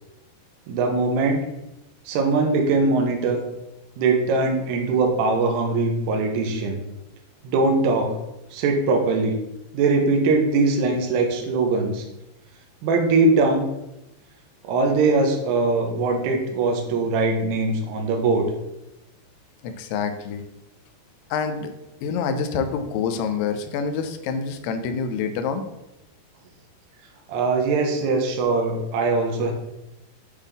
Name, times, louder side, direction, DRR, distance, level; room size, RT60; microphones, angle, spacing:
voice 1, 0.7-1.4 2.1-3.4 4.0-6.8 7.4-8.2 8.5-9.3 9.7-12.1 12.8-13.7 14.6-18.5 27.3-29.5, right 3 dB, 80° right, 2 dB, 2.9 m, -21 dB
voice 2, 19.6-20.4 21.3-21.7 22.0-25.6, left 6 dB, 85° left, 7 dB, 2.6 m, -27 dB
8.3 x 3.6 x 3.4 m, 0.90 s
omnidirectional pair, 4.8 m